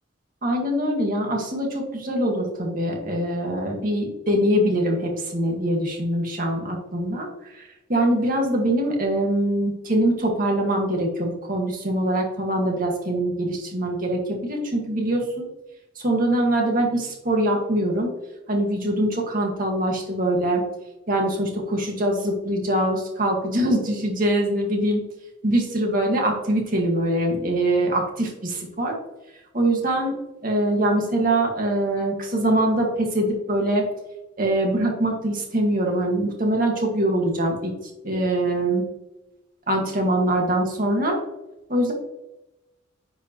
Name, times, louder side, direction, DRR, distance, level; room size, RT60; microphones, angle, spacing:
voice 1, 0.4-15.5 16.0-18.1 18.5-20.6 21.1-25.0 25.4-28.9 29.5-30.2 30.4-33.8 34.4-37.7 38.0-38.8 39.7-41.2 41.7-41.9, right 1 dB, 45° right, 0 dB, 1.9 m, -23 dB
10.0 x 5.0 x 3.1 m, 0.97 s
head